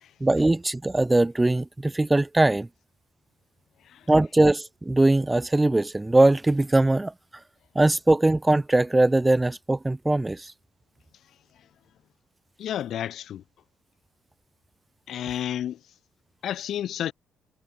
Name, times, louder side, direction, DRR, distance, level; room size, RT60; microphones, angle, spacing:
voice 1, 0.2-2.7 4.1-7.1 7.8-10.5, right 2 dB, 15° right, 0.6 m, -21 dB
voice 2, 12.6-13.4 15.1-15.8 16.4-17.1, left 11 dB, 70° left, 1.0 m, -31 dB
cardioid pair, 90°, 0 cm